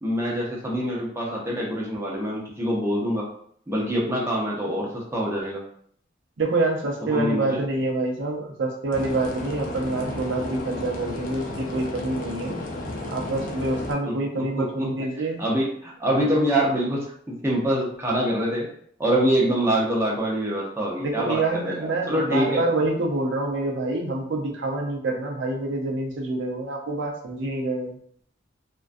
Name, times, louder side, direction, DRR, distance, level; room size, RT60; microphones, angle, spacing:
voice 1, 0.0-3.3 3.7-5.6 7.1-7.6 14.6-15.1 15.4-17.0 17.3-18.7 19.0-22.6, equal, 15° right, -4 dB, 0.6 m, -25 dB
voice 2, 6.4-12.6 13.1-15.4 21.0-28.0, right 2 dB, 85° right, 0 dB, 0.6 m, -26 dB
sound 1, 8.9-13.9, left 1 dB, 45° left, 0.4 m, -33 dB
2.3 x 2.2 x 2.5 m, 0.63 s
head